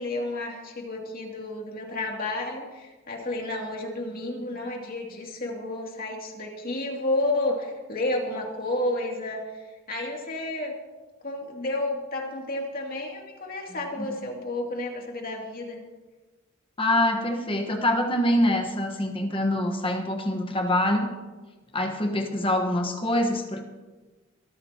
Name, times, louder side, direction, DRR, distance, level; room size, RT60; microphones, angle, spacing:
voice 1, 0.0-10.8 11.2-15.8, left 2 dB, 45° left, 0 dB, 2.6 m, -31 dB
voice 2, 16.8-21.1 21.7-23.6, left 1 dB, 25° left, 3 dB, 1.3 m, -25 dB
24.0 x 13.5 x 2.9 m, 1.2 s
head